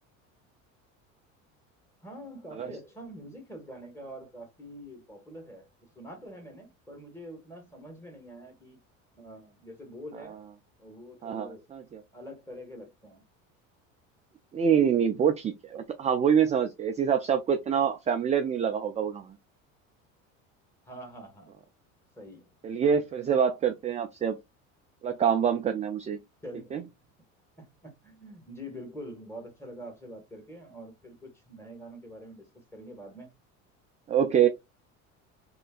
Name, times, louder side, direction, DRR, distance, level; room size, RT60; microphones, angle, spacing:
voice 1, 2.0-5.7 5.9-8.8 9.2-10.4 10.8-11.6 12.1-13.2 20.8-21.6 22.2-22.5 26.4-26.9 27.6-32.5 32.7-33.3, equal, 5° left, 1.6 m, -45 dB
voice 2, 11.2-12.0 14.5-19.4 22.6-24.4 25.0-26.2 26.7-26.8 34.1-34.5, right 8 dB, 20° right, 0.3 m, -25 dB
3.1 x 2.9 x 2.4 m
hypercardioid pair, 80°, 40 cm